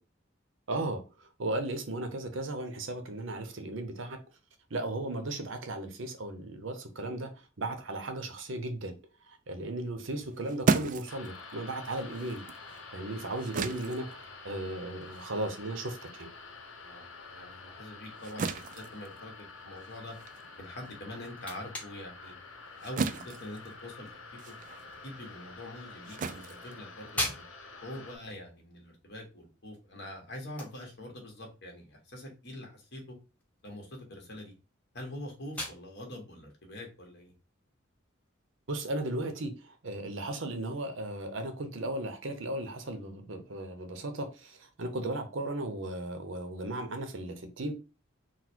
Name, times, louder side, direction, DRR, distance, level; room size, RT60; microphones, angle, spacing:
voice 1, 0.7-4.2 4.7-7.3 7.6-9.0 9.3-12.4 12.9-16.3 38.7-47.7, right 2 dB, 70° right, 0.8 m, -36 dB
sound 1, 10.1-16.9 17.3-27.5, right 5 dB, 40° right, 0.3 m, -37 dB
sound 2, 11.1-28.2, left 4 dB, 80° left, 0.9 m, -48 dB
voice 2, 16.8-20.1 20.6-22.3 22.8-24.5 25.0-27.4 27.8-33.2 33.6-34.5 34.9-37.3, left 1 dB, 55° left, 1.4 m, -44 dB
sound 3, 27.0-38.5, left 1 dB, 5° left, 0.9 m, -45 dB
4.1 x 2.2 x 4.4 m
head